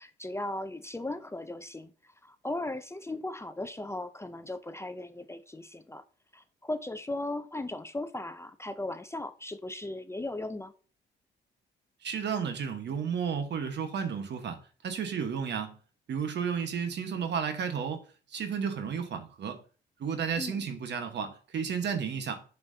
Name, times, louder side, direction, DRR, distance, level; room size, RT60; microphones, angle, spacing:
voice 1, 0.0-6.0 6.3-10.7 20.4-20.6, left 2 dB, 15° left, 0.5 m, -37 dB
voice 2, 12.0-15.8 16.1-18.0 18.3-19.6 20.0-22.4, right 7 dB, 60° right, 1.3 m, -32 dB
7.4 x 5.7 x 2.7 m
cardioid pair, 90°, 20 cm